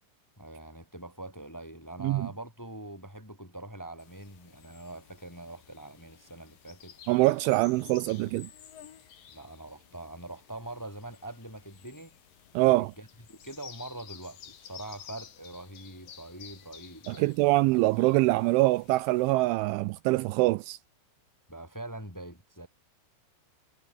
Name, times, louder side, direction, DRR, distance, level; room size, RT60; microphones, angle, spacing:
voice 1, 0.4-7.0 8.1-8.3 9.3-12.2 12.7-17.3 21.5-22.7, right 2 dB, 5° left, 3.3 m, -43 dB
sound 1, 4.0-19.3, left 9 dB, 50° left, 3.5 m, -53 dB
voice 2, 7.1-8.5 12.5-12.9 17.1-20.8, right 21 dB, 80° right, 2.9 m, -24 dB
omnidirectional pair, 5.7 m